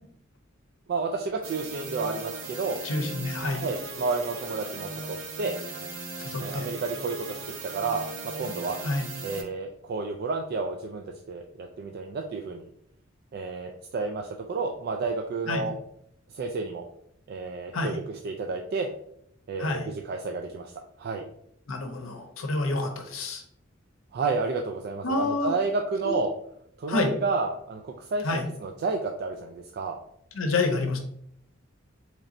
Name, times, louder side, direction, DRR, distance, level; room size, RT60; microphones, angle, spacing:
voice 1, 0.9-2.8 3.5-5.5 6.4-8.8 9.2-12.7 13.3-15.7 16.3-16.8 17.3-18.9 19.5-21.3 24.1-26.3 26.8-28.3 28.6-30.0, right 4 dB, 50° right, 3 dB, 0.3 m, -31 dB
sound 1, 1.4-9.4, right 3 dB, 70° right, 0.7 m, -38 dB
voice 2, 2.8-3.6 6.2-6.7 8.8-9.1 15.5-15.7 17.7-17.9 19.6-19.8 21.7-23.4 25.0-25.5 26.0-26.1 26.9-27.1 28.2-28.5 30.3-31.0, left 3 dB, 85° left, 4 dB, 0.6 m, -28 dB
4.0 x 3.2 x 2.5 m, 0.71 s
head